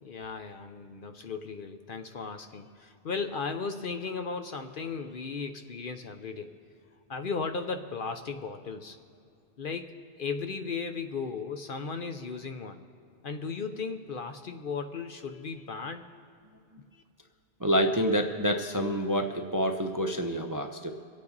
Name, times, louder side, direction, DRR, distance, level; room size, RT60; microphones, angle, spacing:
voice 1, 0.0-6.5 7.1-9.0 9.6-12.8 13.2-16.0 16.9-17.0, left 5 dB, 55° left, 7 dB, 0.8 m, -36 dB
voice 2, 17.6-20.9, equal, 25° right, 5 dB, 0.5 m, -27 dB
24.5 x 8.5 x 4.0 m, 2.5 s
omnidirectional pair, 1.2 m